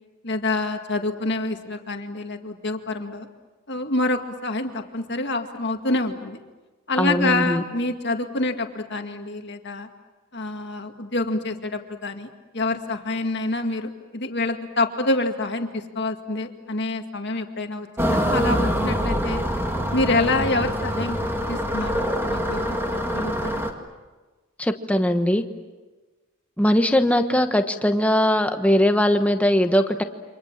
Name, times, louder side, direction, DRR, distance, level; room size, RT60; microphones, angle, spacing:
voice 1, 0.2-3.3 3.7-6.4 6.9-9.9 10.3-12.3 12.5-19.4 19.9-21.2 21.5-22.8 23.1-23.6, left 2 dB, 50° left, 5 dB, 2.1 m, -27 dB
voice 2, 7.0-7.6 24.6-25.4 26.6-30.0, equal, 5° left, 6 dB, 1.2 m, -20 dB
sound 1, 18.0-23.7, equal, 10° right, 2.1 m, -25 dB
29.0 x 26.0 x 7.4 m, 1.3 s
head